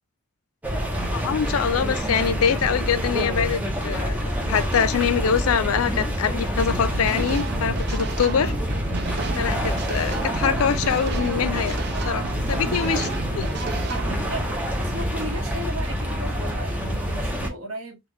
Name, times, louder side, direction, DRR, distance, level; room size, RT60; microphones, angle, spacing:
sound 1, 0.6-17.5, equal, 5° right, 0.7 m, -27 dB
voice 1, 1.1-8.5 9.4-11.8 12.1-13.1 13.3-13.5, left 7 dB, 85° left, 0.4 m, -24 dB
sound 2, 6.6-14.1, right 4 dB, 50° right, 0.5 m, -33 dB
voice 2, 9.0-9.5 12.8-12.9 13.5-18.0, right 1 dB, 75° right, 1.2 m, -36 dB
3.5 x 2.4 x 3.0 m
head